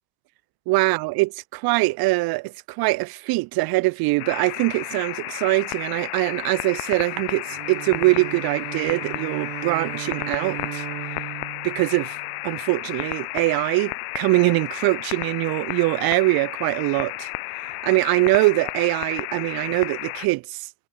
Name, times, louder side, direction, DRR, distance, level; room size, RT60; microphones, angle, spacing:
voice 1, 0.7-10.8 11.6-12.2 12.4-17.3 17.6-20.6, right 23 dB, 50° right, 2.4 m, -23 dB
sound 1, 4.2-20.3, left 32 dB, 55° left, 1.2 m, -33 dB
Bowed string instrument, 7.5-12.9, right 31 dB, 80° right, 7.2 m, -37 dB
cardioid pair, 180°, 46 cm